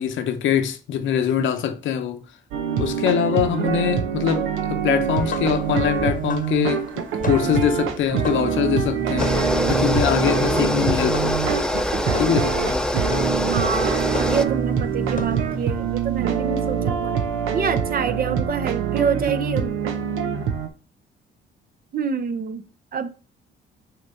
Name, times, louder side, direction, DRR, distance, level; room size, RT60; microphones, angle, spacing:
voice 1, 0.0-2.2 2.8-9.3 9.7-11.4 12.2-12.9, left 9 dB, 75° left, 0.8 m, -23 dB
sound 1, 2.5-20.7, right 8 dB, 90° right, 0.8 m, -25 dB
sound 2, 5.2-15.8, left 5 dB, 45° left, 0.9 m, -36 dB
sound 3, 9.2-14.5, left 1 dB, 5° left, 0.5 m, -24 dB
voice 2, 13.5-17.2 17.5-19.8 21.9-23.1, right 6 dB, 50° right, 0.7 m, -27 dB
5.9 x 3.1 x 5.4 m
cardioid pair, 90°, 20 cm